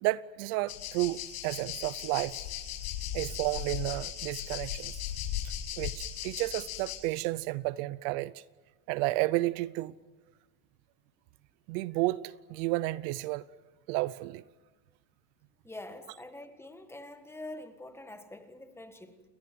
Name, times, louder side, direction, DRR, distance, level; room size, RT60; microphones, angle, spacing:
voice 1, 0.0-2.3 3.1-4.9 5.8-8.3 8.9-9.9 11.7-13.5 13.9-14.4, right 19 dB, 60° right, 0.8 m, -31 dB
sound 1, 0.7-7.0, left 11 dB, 80° left, 6.5 m, -37 dB
voice 2, 15.6-19.2, left 1 dB, 5° left, 1.8 m, -45 dB
29.5 x 21.0 x 7.7 m
supercardioid pair, 140°, 43 cm